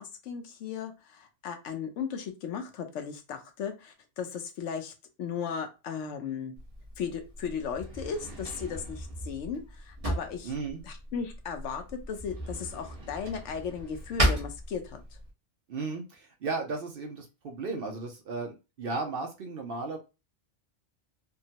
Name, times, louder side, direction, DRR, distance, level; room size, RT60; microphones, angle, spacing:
voice 1, 0.0-4.9 5.2-6.5 7.0-10.5 10.9-15.0, left 7 dB, 75° left, 6 dB, 0.9 m, -36 dB
Drawer open or close, 6.6-15.3, right 1 dB, 30° right, 1.1 m, -35 dB
voice 2, 10.4-10.8 15.7-20.0, right 3 dB, 60° right, 3 dB, 0.7 m, -35 dB
3.6 x 2.0 x 2.8 m, 0.28 s
omnidirectional pair, 1.3 m